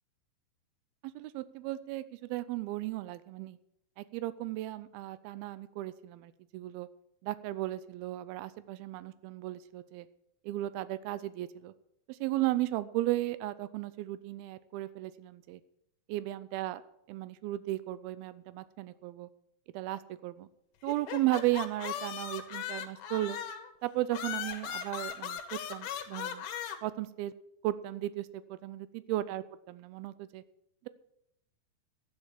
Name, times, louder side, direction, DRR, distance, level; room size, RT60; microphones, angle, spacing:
voice 1, 1.2-3.6 4.0-6.9 7.2-10.1 10.4-11.7 12.1-15.6 16.1-16.8 17.1-19.3 19.7-20.5 20.8-23.4 23.8-26.5 26.8-27.3 27.6-30.4, right 16 dB, 85° right, 15 dB, 2.2 m, -35 dB
sound 1, 20.9-23.7 24.1-26.8, left 9 dB, 70° left, 2.9 m, -38 dB
11.5 x 9.9 x 7.3 m, 0.77 s
omnidirectional pair, 5.0 m